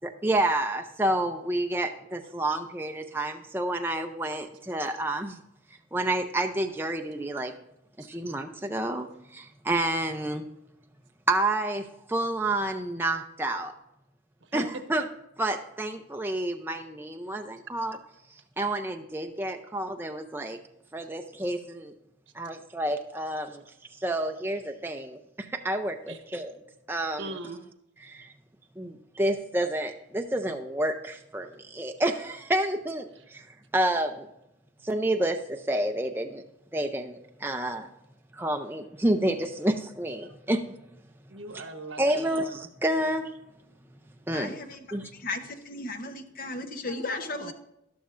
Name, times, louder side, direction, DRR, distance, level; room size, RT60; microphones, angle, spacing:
voice 1, 0.2-5.4 5.9-7.5 8.0-9.1 9.3-10.4 11.3-13.7 14.5-14.6 14.9-15.0 15.4-18.0 18.6-20.6 20.9-21.9 22.3-23.6 24.0-26.5 26.9-27.3 28.0-28.3 28.8-33.5 33.7-34.3 34.8-36.4 36.7-37.9 38.3-40.6 42.0-43.3 44.3-44.6 44.9-45.1, right 1 dB, 10° right, 4 dB, 0.5 m, -29 dB
voice 2, 27.2-27.6 33.1-33.2 40.2-40.3 41.3-42.4 46.9-47.5, right 2 dB, 75° right, 7 dB, 1.1 m, -40 dB
voice 3, 44.3-47.5, left 3 dB, 45° left, 7 dB, 0.8 m, -36 dB
12.5 x 12.0 x 2.5 m, 0.83 s
head